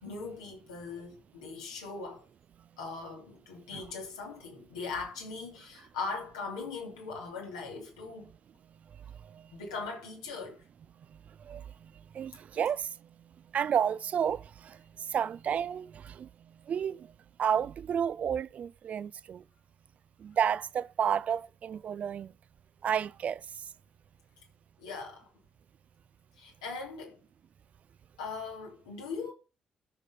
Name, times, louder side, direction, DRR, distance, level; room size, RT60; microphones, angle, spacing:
voice 1, 0.0-2.3 2.8-8.3 9.5-10.6 24.8-25.3 26.4-27.2 28.2-29.3, left 4 dB, 75° left, 2.9 m, -40 dB
voice 2, 12.1-12.9 13.5-14.8 15.1-16.3 16.7-17.1 17.4-19.4 20.2-22.3 22.8-23.4, right 8 dB, 45° right, 0.5 m, -31 dB
13.5 x 6.6 x 5.2 m
figure-of-eight pair, 40°, 3 cm